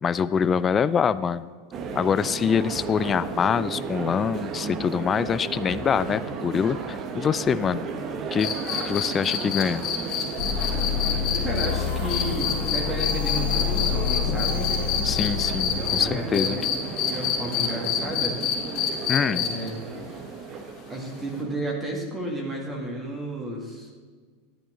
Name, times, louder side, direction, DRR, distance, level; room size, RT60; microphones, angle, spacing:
voice 1, 0.0-1.5 2.0-7.9 8.3-9.8 15.0-16.6 19.1-19.5, left 7 dB, 25° left, 15 dB, 0.4 m, -25 dB
sound 1, 1.7-21.6, right 5 dB, 40° right, 1.1 m, -34 dB
sound 2, 8.4-16.0 16.3-19.7 21.3-21.4, left 9 dB, 45° left, 2.5 m, -27 dB
sound 3, 10.4-16.1, left 9 dB, 70° left, 1.0 m, -28 dB
voice 2, 11.4-14.8 15.9-18.4 19.3-20.1 20.9-23.9, right 1 dB, 20° right, -1 dB, 2.1 m, -32 dB
11.0 x 8.8 x 3.8 m, 1.5 s
hypercardioid pair, 110°, 0 cm